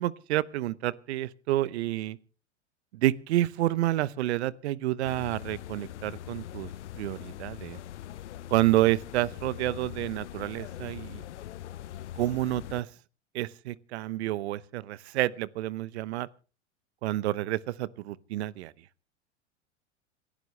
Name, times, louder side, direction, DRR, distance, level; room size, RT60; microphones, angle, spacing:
voice 1, 0.0-2.2 2.9-6.7 6.9-7.8 8.5-11.2 12.2-12.9 13.3-16.3 17.0-18.7, right 15 dB, 65° right, 0.9 m, -29 dB
sound 1, 5.0-12.8, left 12 dB, 75° left, 0.7 m, -42 dB
28.0 x 11.5 x 3.3 m
hypercardioid pair, 90°, 35 cm